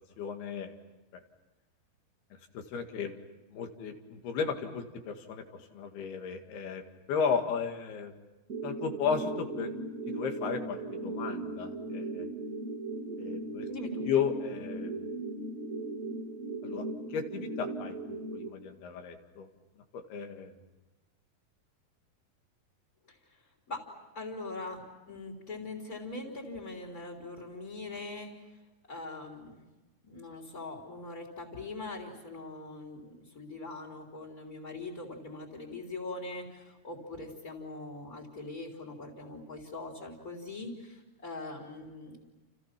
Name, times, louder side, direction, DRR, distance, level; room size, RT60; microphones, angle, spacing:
voice 1, 0.2-0.7 2.5-3.2 3.5-5.5 5.7-6.8 7.1-8.2 8.6-9.7 10.1-12.3 13.2-13.7 14.1-14.9 16.6-19.5 19.9-20.5, left 6 dB, 80° left, 5 dB, 4.0 m, -34 dB
sound 1, 8.5-18.5, right 2 dB, 30° right, 1.6 m, -37 dB
voice 2, 13.7-14.0 23.1-23.4 23.7-23.9 24.1-28.3 28.9-29.6 30.0-42.3, left 2 dB, 20° left, 1 dB, 3.6 m, -42 dB
30.0 x 29.5 x 6.0 m, 1.1 s
omnidirectional pair, 4.5 m